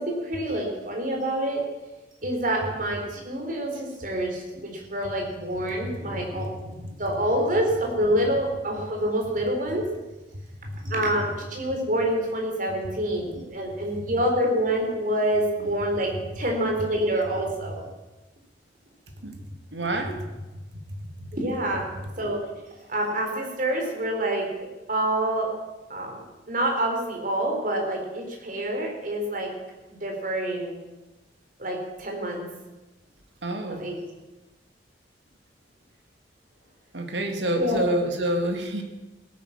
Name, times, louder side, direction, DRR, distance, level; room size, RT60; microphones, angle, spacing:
voice 1, 0.0-1.6 2.2-9.9 10.9-17.8 21.3-22.4 22.9-24.5 24.9-25.5 25.9-26.2 26.5-29.5 29.9-30.8 31.6-32.5 33.7-34.0 37.6-37.9, right 1 dB, 50° right, 1 dB, 4.2 m, -27 dB
voice 2, 19.7-20.3 20.9-21.3 33.4-33.9 36.9-38.8, right 1 dB, 85° right, 4 dB, 2.2 m, -28 dB
17.5 x 10.5 x 7.4 m, 1.1 s
head